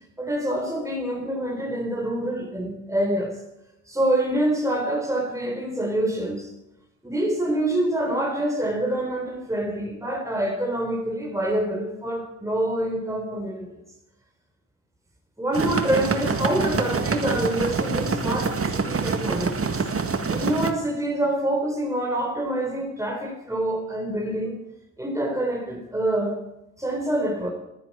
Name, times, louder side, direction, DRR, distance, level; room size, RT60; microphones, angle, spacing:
voice 1, 0.2-3.4 3.9-6.5 7.0-13.7 15.4-19.8 20.3-24.6 25.0-26.4 26.8-27.5, right 1 dB, 10° right, 1 dB, 3.6 m, -26 dB
sound 1, 15.5-20.7, right 4 dB, 40° right, 1.7 m, -26 dB
11.5 x 10.5 x 8.4 m, 0.92 s
hypercardioid pair, 45°, 36 cm